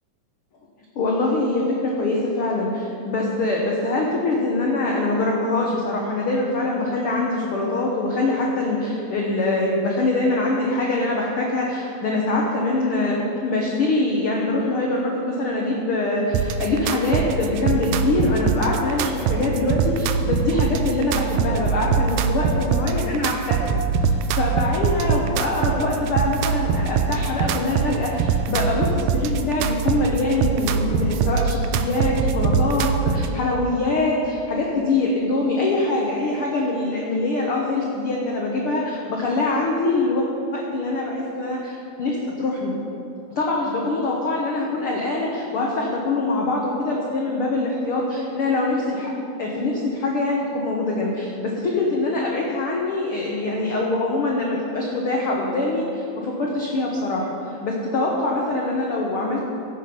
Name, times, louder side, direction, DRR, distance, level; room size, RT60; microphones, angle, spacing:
voice 1, 0.9-13.2 13.4-40.3 40.5-42.7 43.3-49.1 49.4-59.4, left 2 dB, 70° left, -2 dB, 1.3 m, -24 dB
sound 1, 16.3-33.3, right 6 dB, 80° right, 2.2 m, -23 dB
16.5 x 7.5 x 5.2 m, 2.8 s
omnidirectional pair, 4.2 m